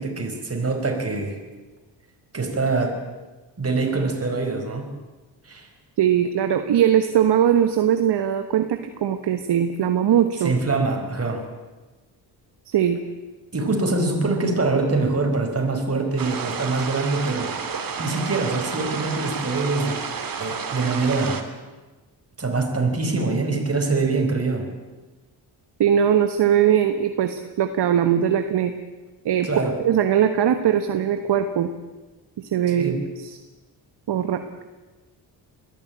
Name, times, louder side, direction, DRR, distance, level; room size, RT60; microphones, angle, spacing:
voice 1, 0.0-1.4 2.3-3.0 3.6-4.9 5.5-5.7 10.4-11.5 13.5-17.5 18.0-20.0 20.4-21.4 22.4-24.7 29.4-29.8 32.7-33.0, right 3 dB, 35° right, 4 dB, 5.2 m, -24 dB
voice 2, 6.0-10.5 12.7-13.0 25.8-28.7 29.2-31.7 32.4-33.4 34.1-34.4, right 9 dB, 65° right, 8 dB, 1.4 m, -20 dB
sound 1, 16.2-21.4, right 6 dB, 50° right, 2.5 m, -30 dB
21.0 x 14.5 x 8.8 m, 1.2 s
cardioid pair, 75°, 43 cm